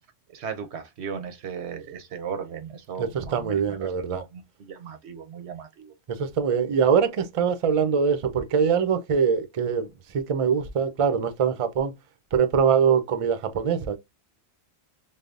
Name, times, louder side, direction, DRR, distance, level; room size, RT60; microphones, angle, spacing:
voice 1, 0.3-5.9, right 7 dB, 90° right, 1.1 m, -37 dB
voice 2, 3.0-4.2 6.1-9.9 10.1-11.9 12.3-14.0, right 7 dB, 45° right, 0.5 m, -23 dB
5.3 x 2.0 x 2.4 m
omnidirectional pair, 1.1 m